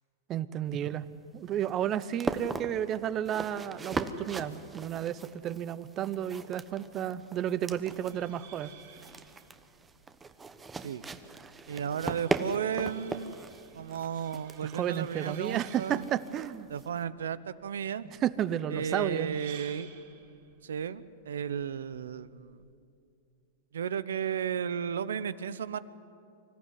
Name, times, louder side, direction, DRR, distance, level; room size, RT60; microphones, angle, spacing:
voice 1, 0.3-1.0 1.3-8.7 14.6-16.7 18.2-19.4, right 10 dB, 35° right, 16 dB, 0.8 m, -32 dB
sound 1, 0.7-17.0, right 4 dB, 15° right, 1.1 m, -39 dB
sound 2, 7.8-22.7, right 8 dB, 70° right, 5.6 m, -55 dB
voice 2, 11.7-13.4 13.7-16.1 16.7-18.1 18.7-19.9 20.6-22.6 23.7-25.8, right 8 dB, 90° right, 16 dB, 0.8 m, -34 dB
25.0 x 14.5 x 9.6 m, 2.5 s
hypercardioid pair, 130°, 0 cm